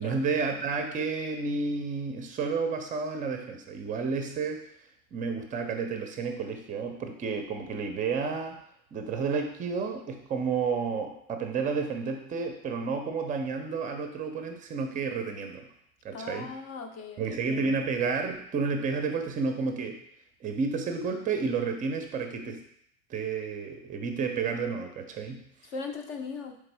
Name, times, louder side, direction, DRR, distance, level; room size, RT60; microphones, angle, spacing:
voice 1, 0.0-4.6 5.1-8.6 8.9-15.7 16.0-16.5 17.2-20.0 20.4-22.6 23.1-25.5, right 5 dB, 20° right, 5 dB, 0.5 m, -31 dB
voice 2, 16.1-17.4 25.6-26.6, left 4 dB, 40° left, 5 dB, 0.7 m, -38 dB
4.1 x 3.4 x 3.3 m, 0.71 s
figure-of-eight pair, 85°, 46 cm